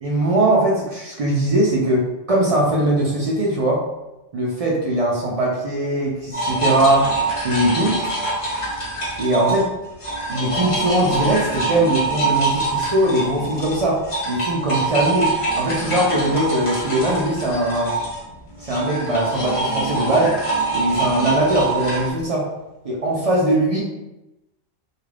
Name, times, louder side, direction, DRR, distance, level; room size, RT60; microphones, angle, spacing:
voice 1, 0.0-3.8 4.3-7.1 7.4-8.0 9.2-9.7 10.3-18.0 18.6-20.4 20.7-22.5 22.8-23.8, right 1 dB, 65° right, -4 dB, 0.3 m, -20 dB
sound 1, 6.3-9.7 10.0-22.1, right 2 dB, 35° left, 0.6 m, -24 dB
2.4 x 2.2 x 3.2 m, 0.97 s
omnidirectional pair, 1.3 m